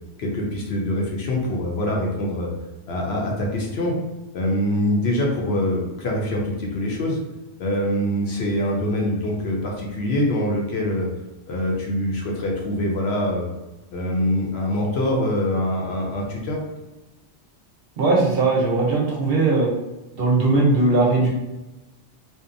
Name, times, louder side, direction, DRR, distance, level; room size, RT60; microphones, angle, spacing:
voice 1, 0.2-2.5 2.9-4.0 4.3-7.2 7.6-11.1 11.5-13.5 13.9-16.6, left 1 dB, 65° left, -1 dB, 0.8 m, -24 dB
voice 2, 18.0-19.7 20.2-21.3, right 3 dB, 60° right, -3 dB, 0.8 m, -19 dB
2.6 x 2.1 x 2.5 m, 1.0 s
omnidirectional pair, 1.2 m